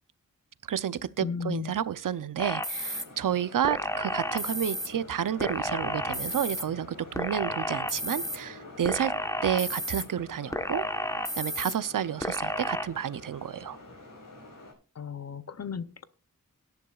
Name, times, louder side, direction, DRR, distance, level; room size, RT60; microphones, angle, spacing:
voice 1, 0.7-9.1 9.4-10.8 11.4-13.8, right 9 dB, 70° right, 0.6 m, -30 dB
voice 2, 1.2-1.7 15.0-16.0, left 6 dB, 50° left, 0.7 m, -35 dB
sound 1, 2.4-3.0 3.6-4.9 5.4-6.6 7.1-8.4 8.8-10.0 10.5-11.7 12.2-12.8, left 1 dB, 10° left, 1.1 m, -32 dB
sound 2, 2.7-14.7, left 2 dB, 65° left, 5.2 m, -47 dB
17.5 x 10.5 x 2.4 m
wide cardioid pair, 100°, 33 cm